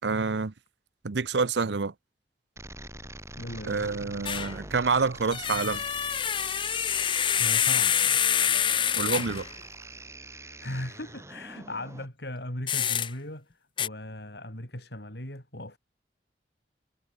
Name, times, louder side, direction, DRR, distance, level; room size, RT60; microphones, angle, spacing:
voice 1, 0.0-0.5 1.0-1.9 3.6-5.8 9.0-9.5, right 4 dB, 85° right, 0.7 m, -27 dB
sound 1, 2.6-12.1, right 2 dB, 15° right, 3.4 m, -44 dB
voice 2, 3.4-3.9 7.4-8.0 10.4-13.5 13.8-15.8, left 1 dB, 70° left, 7.9 m, -38 dB
sound 2, 4.3-4.5 5.3-9.5 12.7-13.1 13.8-13.9, left 9 dB, 30° left, 0.5 m, -26 dB
head